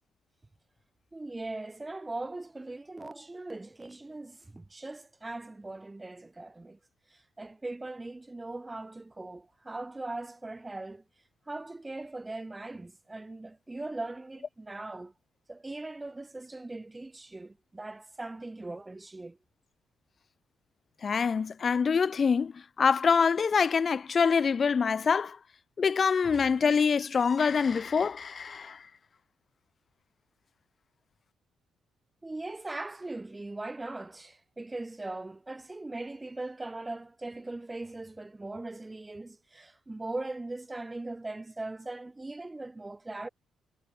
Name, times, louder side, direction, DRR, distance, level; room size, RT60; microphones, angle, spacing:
voice 1, 1.1-6.8 7.1-11.0 11.5-15.1 15.5-19.4 32.2-43.3, right 2 dB, 15° right, 4.6 m, -40 dB
voice 2, 21.0-25.4 25.8-28.8, left 6 dB, 40° left, 2.0 m, -25 dB
cardioid pair, 90°, 0 cm